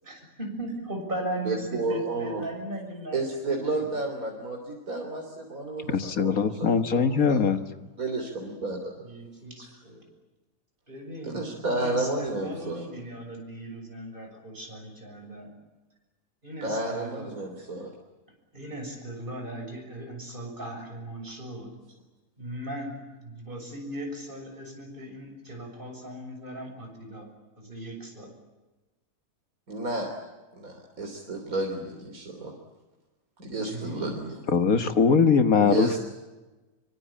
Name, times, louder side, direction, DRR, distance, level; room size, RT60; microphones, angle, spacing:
voice 1, 0.0-3.9 9.0-10.1 10.9-15.5 16.4-17.4 18.5-21.7 22.4-27.3 27.6-28.3 33.6-34.1, right 1 dB, 30° right, 3 dB, 7.1 m, -38 dB
voice 2, 1.5-2.5 3.1-7.4 8.0-9.0 11.2-12.9 16.6-17.9 29.7-30.1 30.6-32.5 33.4-34.3 35.6-36.0, right 2 dB, 65° right, 2 dB, 3.9 m, -31 dB
voice 3, 5.9-7.6 34.5-35.9, left 6 dB, 65° left, 10 dB, 1.9 m, -21 dB
25.5 x 24.0 x 8.7 m, 1.2 s
omnidirectional pair, 1.6 m